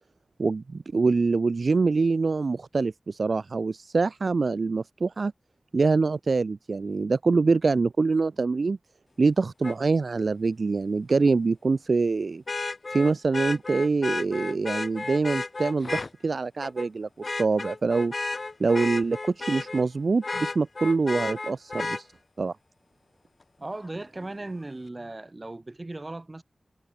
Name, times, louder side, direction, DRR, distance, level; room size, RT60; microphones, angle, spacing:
voice 1, 0.4-5.3 5.7-8.8 9.2-12.4 12.9-18.1 18.6-22.1 22.4-22.5, right 4 dB, 80° right, 0.5 m, -25 dB
Vehicle horn car horn honking, 9.6-9.7 12.5-16.1 16.6-16.9 17.2-19.8 20.2-22.0 23.8-23.9, left 3 dB, 60° left, 3.5 m, -32 dB
voice 2, 23.6-26.4, right 2 dB, 40° right, 2.7 m, -37 dB
wide cardioid pair, 65°, 0 cm